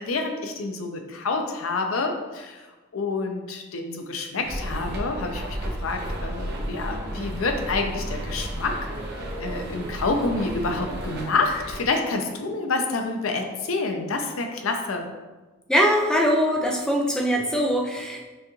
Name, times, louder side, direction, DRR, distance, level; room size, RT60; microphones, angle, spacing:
voice 1, 0.0-2.6 2.9-8.9 9.4-15.1, left 3 dB, 90° left, 4 dB, 0.6 m, -28 dB
sound 1, 4.4-11.9, right 1 dB, 55° right, 0.7 m, -33 dB
voice 2, 15.7-18.3, equal, 5° left, -1 dB, 0.4 m, -22 dB
6.2 x 2.3 x 3.0 m, 1.2 s
head